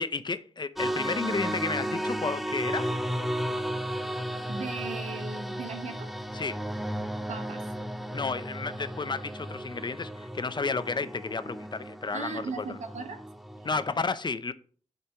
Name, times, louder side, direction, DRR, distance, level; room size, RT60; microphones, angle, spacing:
voice 1, 0.0-2.9 6.3-6.6 8.1-12.8 13.6-14.5, left 4 dB, 40° left, 0.7 m, -32 dB
sound 1, 0.8-14.0, equal, ahead, 0.8 m, -34 dB
voice 2, 4.5-6.1 7.3-7.6 12.1-13.2 13.6-13.7, right 4 dB, 80° right, 1.3 m, -37 dB
8.5 x 5.3 x 4.5 m
cardioid pair, 75°, 12 cm